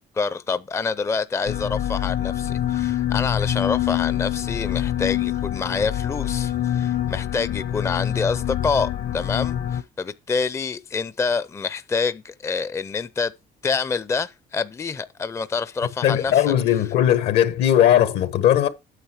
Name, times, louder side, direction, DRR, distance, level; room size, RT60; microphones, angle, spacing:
voice 1, 0.2-13.3 13.6-16.4, left 5 dB, 15° left, 0.4 m, -27 dB
sound 1, 1.5-9.8, left 11 dB, 60° left, 0.8 m, -25 dB
voice 2, 16.0-18.7, left 11 dB, 80° left, 1.1 m, -18 dB
9.1 x 6.7 x 4.8 m
cardioid pair, 110°, 17 cm